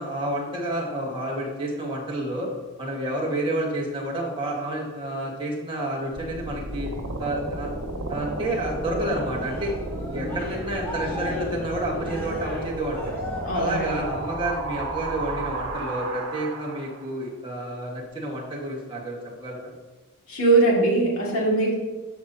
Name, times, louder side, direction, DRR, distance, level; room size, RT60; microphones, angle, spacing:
voice 1, 0.0-2.5 2.8-6.9 7.2-7.7 8.1-9.7 10.1-13.1 13.5-19.7, right 1 dB, 20° right, -3 dB, 1.5 m, -30 dB
sound 1, 6.1-17.1, right 2 dB, 75° right, 1.3 m, -33 dB
Cheering, 9.3-14.6 15.0-15.4, left 1 dB, 10° left, 1.5 m, -40 dB
voice 2, 13.4-14.0 20.3-21.7, right 2 dB, 75° left, -3 dB, 2.2 m, -21 dB
12.5 x 5.4 x 2.8 m, 1.2 s
head